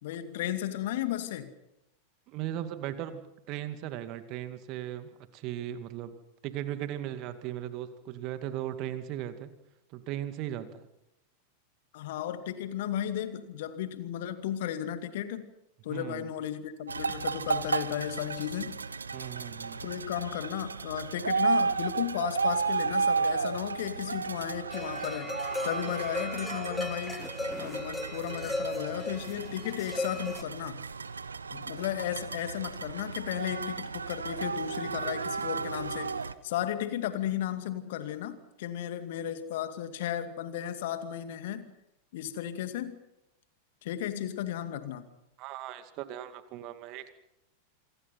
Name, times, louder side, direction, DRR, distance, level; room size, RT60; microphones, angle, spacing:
voice 1, 0.0-1.5 11.9-15.5 15.8-18.8 19.8-27.3 27.6-30.8 31.5-41.7 42.1-43.0 43.8-45.1, left 11 dB, 55° left, 10 dB, 2.2 m, -34 dB
voice 2, 2.3-3.2 3.5-6.1 6.4-9.5 9.9-10.8 15.9-16.3 19.1-19.8 45.4-47.1, right 12 dB, 40° right, 10 dB, 2.3 m, -37 dB
sound 1, 16.9-36.3, right 4 dB, 75° right, 0.9 m, -33 dB
sound 2, 24.7-30.4, left 2 dB, 5° left, 1.3 m, -37 dB
27.5 x 23.5 x 5.9 m, 0.86 s
figure-of-eight pair, 90°, 0 cm